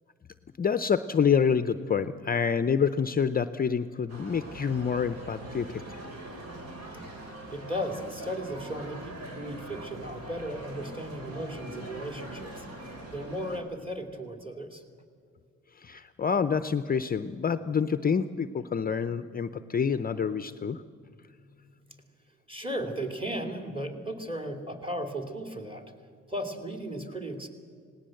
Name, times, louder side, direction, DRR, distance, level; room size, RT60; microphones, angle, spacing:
voice 1, 0.6-6.0 15.8-20.8, left 6 dB, 30° left, 12 dB, 0.6 m, -27 dB
sound 1, 4.1-13.6, right 1 dB, 60° right, 4.2 m, -42 dB
voice 2, 7.5-12.7 13.1-14.8 21.0-22.0 22.5-25.8 26.3-27.5, equal, 20° right, 6 dB, 2.9 m, -36 dB
19.0 x 18.0 x 7.8 m, 2.2 s
cardioid pair, 90°, 30 cm